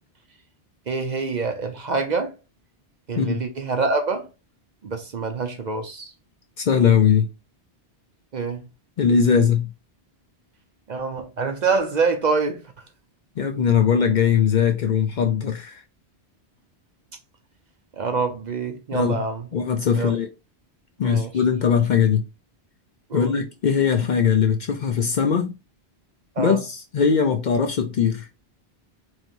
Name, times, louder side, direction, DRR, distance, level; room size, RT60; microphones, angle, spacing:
voice 1, 0.9-2.3 3.1-4.3 4.8-6.1 8.3-8.6 10.9-12.6 17.9-19.5 19.9-20.1 21.0-21.3 23.1-23.3 26.4-26.6, right 4 dB, 50° right, 0.7 m, -25 dB
voice 2, 6.6-7.3 9.0-9.7 13.4-15.8 18.9-19.2 19.5-20.3 21.0-22.3 23.1-25.5 26.4-28.3, left 7 dB, 55° left, 0.6 m, -20 dB
4.3 x 3.2 x 2.6 m
omnidirectional pair, 1.1 m